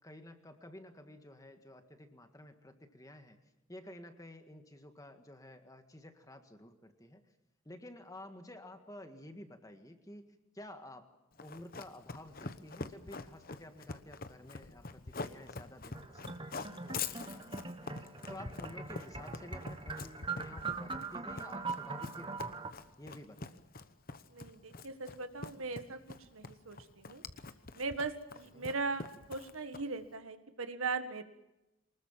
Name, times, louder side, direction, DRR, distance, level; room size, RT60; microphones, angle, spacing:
voice 1, 0.0-3.4 3.7-7.2 7.7-10.2 10.5-11.1 11.4-22.7 23.0-23.6 28.5-28.7, left 1 dB, 15° left, 7 dB, 1.8 m, -52 dB
Run, 11.4-30.1, left 4 dB, 45° left, 1.0 m, -44 dB
sound 1, 15.9-22.7, right 4 dB, 25° right, 1.3 m, -42 dB
voice 2, 24.3-27.2 27.7-29.0 29.3-31.2, right 4 dB, 75° right, 9 dB, 1.7 m, -39 dB
24.5 x 20.5 x 7.5 m, 0.90 s
head